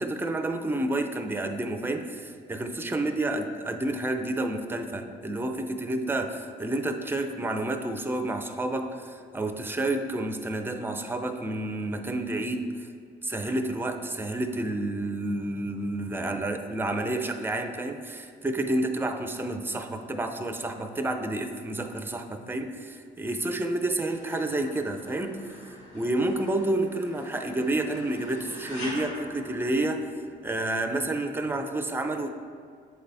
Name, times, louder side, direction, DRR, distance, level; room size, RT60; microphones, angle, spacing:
voice 1, 0.0-12.9 13.2-30.1 30.4-32.3, right 1 dB, 10° right, 6 dB, 0.5 m, -30 dB
sound 1, 24.1-30.4, equal, 85° left, 1.5 m, -44 dB
7.8 x 4.0 x 3.4 m, 2.2 s
cardioid pair, 90°, 20 cm